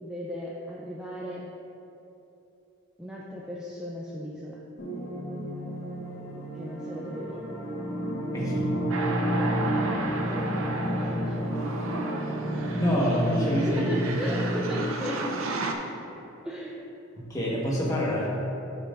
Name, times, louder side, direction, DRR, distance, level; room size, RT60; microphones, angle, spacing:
voice 1, 0.0-1.5 3.0-4.6 6.5-7.4 10.1-10.7 11.1-11.6 13.7-15.4 16.4-16.8, equal, 5° right, -6 dB, 0.5 m, -36 dB
sound 1, 4.8-14.9, equal, 80° left, 1.5 m, -31 dB
voice 2, 8.3-8.7 12.7-14.0 17.2-18.3, equal, 15° left, -5 dB, 1.2 m, -26 dB
sound 2, 8.9-15.7, right 3 dB, 75° right, 0.6 m, -34 dB
12.5 x 5.6 x 2.5 m, 2.9 s
head